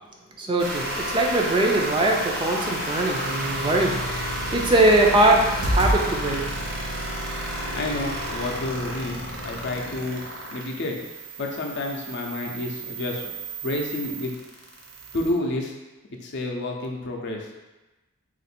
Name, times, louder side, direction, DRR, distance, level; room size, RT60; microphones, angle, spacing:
voice 1, 0.4-4.0 4.5-6.4, right 2 dB, 20° right, 0 dB, 0.4 m, -21 dB
sound 1, 0.6-15.3, right 1 dB, 65° right, 0.9 m, -32 dB
sound 2, 5.6-6.0 6.6-7.6 8.7-8.8 9.3-9.6 10.0-10.3 10.7-10.8, equal, 85° right, 0.6 m, -28 dB
voice 2, 7.7-11.0 11.4-13.3 13.6-14.3 15.1-15.8 16.2-17.5, left 2 dB, 50° left, 1 dB, 0.5 m, -30 dB
3.6 x 2.5 x 4.2 m, 1.1 s
head